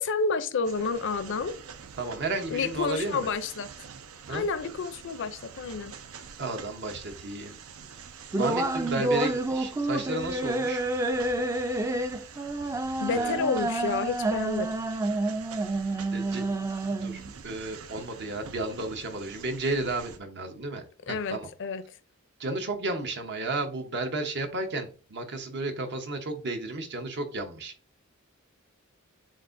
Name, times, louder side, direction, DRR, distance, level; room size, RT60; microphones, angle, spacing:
voice 1, 0.0-1.5 2.5-3.7 4.3-5.9 13.0-14.7 21.1-21.8, left 4 dB, 60° left, 0.5 m, -29 dB
sound 1, 0.6-20.2, right 6 dB, 80° right, 0.5 m, -46 dB
voice 2, 2.0-3.3 4.3-4.5 6.4-7.6 8.4-10.8 13.1-13.4 16.1-16.4 16.9-21.5 22.4-27.7, right 2 dB, 55° right, 0.9 m, -33 dB
sound 2, 8.3-17.3, right 2 dB, 15° right, 0.4 m, -29 dB
7.4 x 2.5 x 2.6 m
head